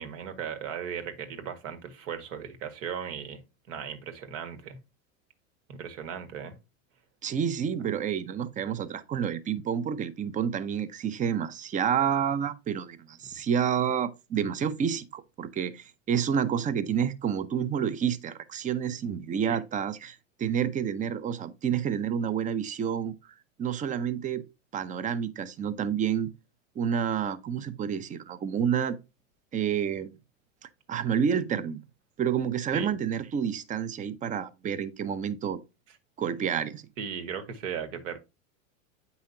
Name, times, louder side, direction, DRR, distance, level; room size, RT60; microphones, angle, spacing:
voice 1, 0.0-3.4 3.7-4.8 5.7-6.6 19.4-19.6 32.7-32.9 37.0-38.2, right 7 dB, 65° right, 1.9 m, -37 dB
voice 2, 7.2-23.1 23.6-24.4 24.7-26.3 26.8-29.0 29.5-30.1 30.9-31.8 32.2-35.6 36.2-36.8, right 8 dB, 20° right, 0.6 m, -29 dB
8.7 x 5.6 x 2.8 m
hypercardioid pair, 120°, 41 cm